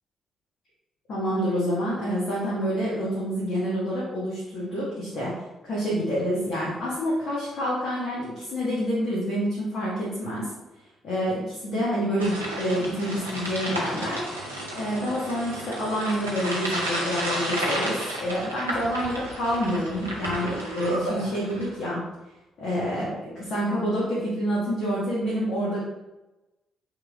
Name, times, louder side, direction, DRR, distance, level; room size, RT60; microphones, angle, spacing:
voice 1, 1.1-5.3 5.6-10.5 11.0-14.2 14.7-22.0 22.6-25.8, equal, 55° left, -7 dB, 1.3 m, -27 dB
sound 1, 12.2-21.8, right 1 dB, 85° right, 0.6 m, -32 dB
3.5 x 3.0 x 3.6 m, 1.0 s
figure-of-eight pair, 40°, 0 cm